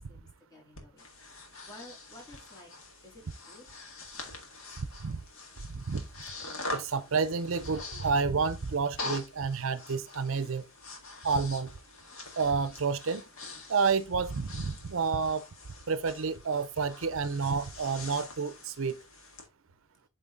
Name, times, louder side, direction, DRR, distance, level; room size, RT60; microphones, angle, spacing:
voice 1, 0.1-1.0 1.7-2.7 3.0-3.1 3.5-3.7, left 1 dB, 15° left, 2.7 m, -51 dB
Breathing, 0.8-19.5, left 3 dB, 65° left, 1.9 m, -44 dB
voice 2, 6.7-10.6 11.2-11.7 12.4-13.2 13.7-15.4 15.9-18.9, right 5 dB, 65° right, 0.6 m, -29 dB
8.2 x 3.9 x 3.8 m
head